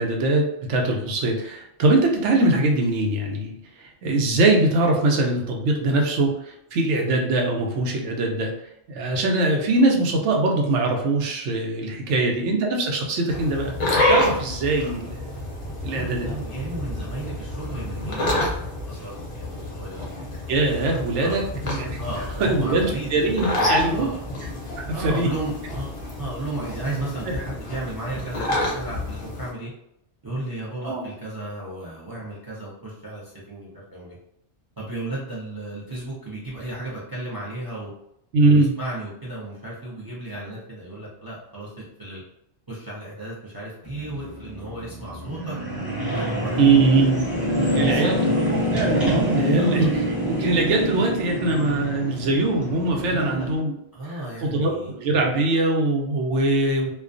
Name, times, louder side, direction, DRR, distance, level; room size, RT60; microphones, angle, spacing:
voice 1, 0.0-3.5 3.8-8.5 8.9-15.2 15.8-16.3 20.5-22.0 22.4-24.1 24.9-25.3 30.8-31.0 38.3-38.7 46.6-47.2 47.7-48.2 48.5-49.9 50.3-53.7 54.4-56.9, right 2 dB, 90° right, 1 dB, 0.9 m, -22 dB
voice 2, 11.9-12.5 15.8-20.1 21.2-21.4 22.0-24.2 24.9-29.7 30.2-34.2 34.8-37.9 38.4-42.2 42.7-45.6 46.1-46.7 47.7-48.5 49.6-49.9 53.1-53.5 53.9-54.9, right 1 dB, 40° right, -6 dB, 0.3 m, -34 dB
sound 1, 13.3-29.5, left 1 dB, 40° left, 0.4 m, -28 dB
sound 2, 43.8-53.6, equal, ahead, 0.7 m, -26 dB
2.3 x 2.2 x 2.4 m, 0.78 s
omnidirectional pair, 1.2 m